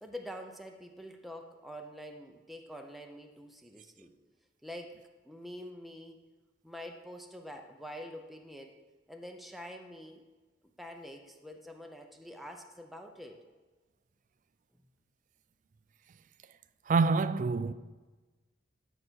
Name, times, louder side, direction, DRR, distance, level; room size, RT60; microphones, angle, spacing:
voice 1, 0.0-4.1 4.6-5.0 5.2-6.2 6.6-8.8 9.1-10.2 10.8-13.4, equal, ahead, 0.6 m, -46 dB
voice 2, 16.9-17.7, right 4 dB, 45° right, 0.3 m, -26 dB
12.5 x 5.0 x 4.5 m
head